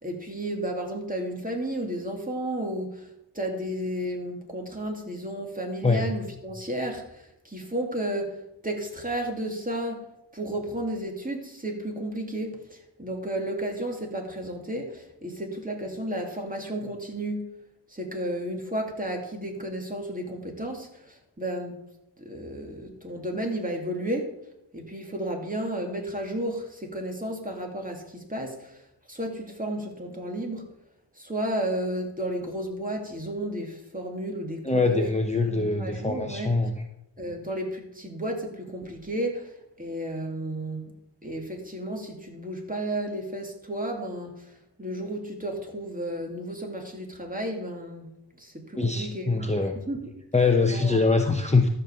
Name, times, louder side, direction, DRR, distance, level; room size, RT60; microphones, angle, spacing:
voice 1, 0.0-3.1 3.3-8.4 8.6-10.1 10.3-17.5 17.9-21.8 22.2-24.3 24.7-28.8 29.1-30.7 31.2-35.1 35.5-36.5 37.2-40.9 41.2-44.5 44.8-48.1 48.4-50.1 50.7-51.0, right 1 dB, 20° right, 1 dB, 2.4 m, -33 dB
voice 2, 34.6-36.7 48.8-49.8 50.3-51.7, left 3 dB, 15° left, 3 dB, 0.9 m, -23 dB
13.0 x 5.3 x 6.9 m, 0.84 s
wide cardioid pair, 70°, 41 cm